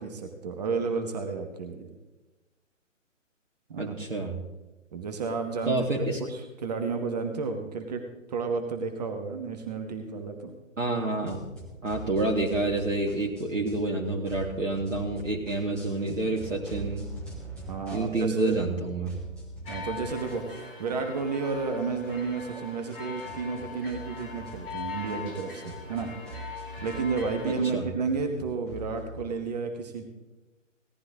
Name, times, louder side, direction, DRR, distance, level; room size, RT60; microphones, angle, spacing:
voice 1, 0.0-1.9 3.7-4.0 4.9-10.5 17.7-18.6 19.7-26.1 26.8-30.0, right 4 dB, 30° right, 5 dB, 1.3 m, -32 dB
voice 2, 3.8-4.4 5.7-6.2 10.8-11.4 11.8-17.1 17.9-19.2 27.4-27.8, right 2 dB, 70° right, 0 dB, 1.8 m, -28 dB
sound 1, 11.3-13.9 14.2-18.8 19.0-29.3, right 2 dB, 5° right, 0.4 m, -44 dB
sound 2, 19.6-27.6, left 5 dB, 45° left, 3.4 m, -41 dB
17.5 x 11.5 x 3.6 m, 1.1 s
figure-of-eight pair, 135°, 38 cm